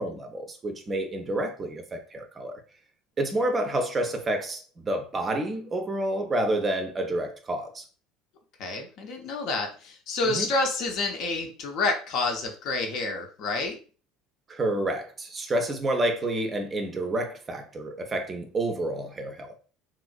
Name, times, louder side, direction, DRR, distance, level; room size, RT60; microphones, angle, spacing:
voice 1, 0.0-2.6 3.2-7.8 10.2-10.5 14.5-19.5, right 1 dB, 25° right, 0.5 m, -29 dB
voice 2, 8.6-13.8, left 3 dB, 50° left, 0.6 m, -29 dB
3.0 x 2.5 x 2.3 m
figure-of-eight pair, 65°, 0 cm